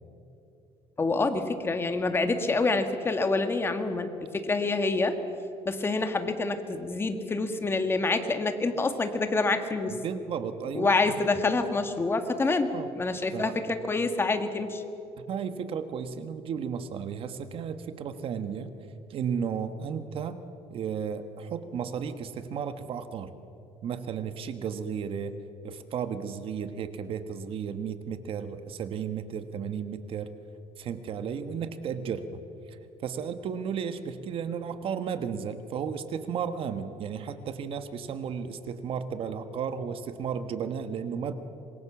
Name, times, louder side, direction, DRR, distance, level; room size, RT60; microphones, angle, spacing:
voice 1, 1.0-5.2 5.6-9.9 10.7-14.8, left 3 dB, 20° left, 7 dB, 1.8 m, -27 dB
voice 2, 9.9-11.2 12.7-12.9 13.3-13.6 15.2-18.7 19.1-20.4 20.7-23.3 23.8-25.3 25.6-30.3 30.8-32.4 32.7-41.3, right 7 dB, 55° right, 10 dB, 1.4 m, -34 dB
26.0 x 21.5 x 7.2 m, 2.8 s
cardioid pair, 135°, 11 cm